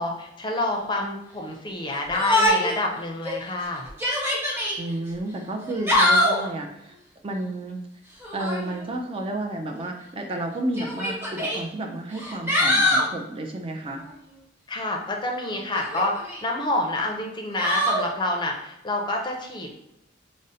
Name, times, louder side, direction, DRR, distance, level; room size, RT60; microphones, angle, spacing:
voice 1, 0.0-3.9 14.7-19.7, left 2 dB, 25° left, 1 dB, 0.5 m, -28 dB
Yell, 2.1-2.8 3.2-3.3 3.9-4.8 5.6-6.5 8.2-8.7 9.8-9.9 10.8-11.6 12.1-13.1 15.7-16.4 17.6-18.1, left 1 dB, 15° right, 0.8 m, -23 dB
voice 2, 4.8-6.9 7.2-7.8 8.3-14.0, right 1 dB, 30° right, 2 dB, 0.4 m, -31 dB
5.0 x 2.0 x 2.7 m, 0.85 s
head